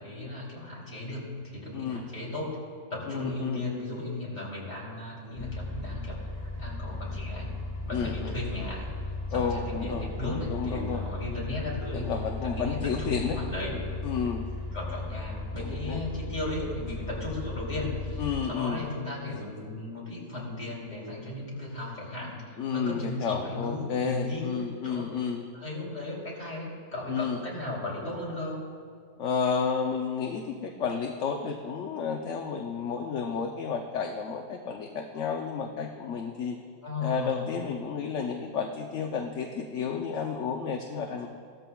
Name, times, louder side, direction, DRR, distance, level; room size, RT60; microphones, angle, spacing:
voice 1, 0.0-2.6 2.9-6.2 6.6-7.5 7.8-8.9 9.3-12.1 12.4-13.8 14.7-22.3 22.7-24.6 24.8-25.0 25.5-28.6 36.8-37.4, left 2 dB, 35° left, -5 dB, 3.2 m, -35 dB
voice 2, 3.1-3.6 7.9-8.3 9.3-11.0 11.9-13.4 14.0-14.4 15.6-16.0 18.2-18.8 22.6-25.4 27.1-27.4 29.2-36.6 37.0-41.3, left 6 dB, 65° left, 2 dB, 1.0 m, -31 dB
sound 1, 5.3-18.4, left 2 dB, 10° left, 3.0 m, -36 dB
16.5 x 13.5 x 2.3 m, 2.1 s
omnidirectional pair, 1.4 m